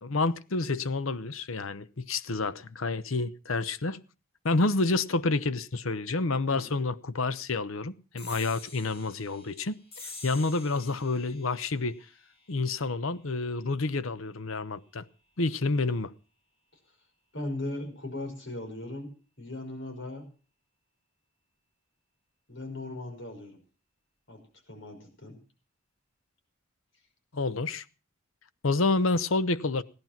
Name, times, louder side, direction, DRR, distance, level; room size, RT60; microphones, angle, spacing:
voice 1, 0.0-4.0 4.4-12.0 12.5-15.0 15.4-16.1 27.3-27.8 28.6-29.8, left 3 dB, 75° left, 0.9 m, -29 dB
voice 2, 6.5-6.9 17.3-19.1 19.4-20.3 22.5-23.6 24.3-24.4 24.7-25.4, left 2 dB, 60° left, 5.4 m, -38 dB
sound 1, 8.2-15.0, left 3 dB, 30° left, 3.4 m, -49 dB
17.0 x 11.0 x 5.9 m
head